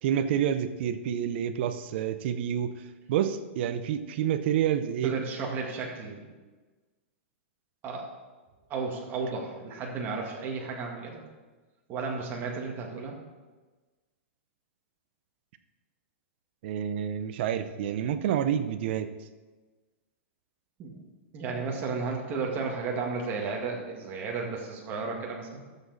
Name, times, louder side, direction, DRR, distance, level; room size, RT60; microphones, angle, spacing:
voice 1, 0.0-5.1 16.6-19.1, right 9 dB, 55° right, 10 dB, 0.8 m, -28 dB
voice 2, 5.0-6.3 7.8-8.1 8.7-11.2 11.9-13.2 20.8-21.0 21.3-25.6, right 4 dB, 25° right, -1 dB, 1.9 m, -33 dB
12.5 x 7.2 x 4.1 m, 1.3 s
hypercardioid pair, 150°, 7 cm